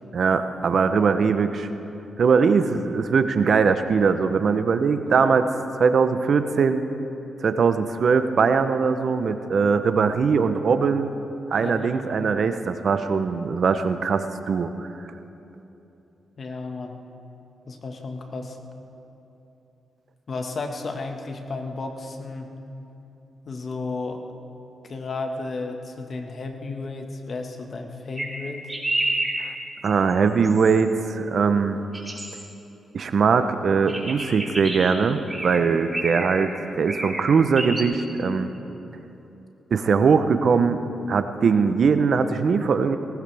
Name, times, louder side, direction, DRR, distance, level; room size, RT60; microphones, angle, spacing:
voice 1, 0.1-1.7 2.2-5.5 5.8-6.8 7.4-11.1 11.5-14.9 29.4-29.5 29.8-31.8 32.9-36.5 36.8-38.5 39.7-40.8 41.1-43.0, right 5 dB, 65° right, 9 dB, 0.8 m, -21 dB
voice 2, 11.6-12.0 16.4-16.9 17.7-18.6 20.3-22.5 23.4-24.2 24.9-28.7, left 3 dB, 55° left, 4 dB, 1.6 m, -33 dB
sound 1, 28.2-28.3 28.7-29.3 29.8-30.1 30.4-30.8 31.9-32.4 33.9-34.9 35.3-35.6 35.9-36.5 36.9-37.2 37.6-37.8, right 1 dB, 20° right, 4.2 m, -29 dB
19.0 x 18.5 x 3.5 m, 2.9 s
cardioid pair, 55°, 0 cm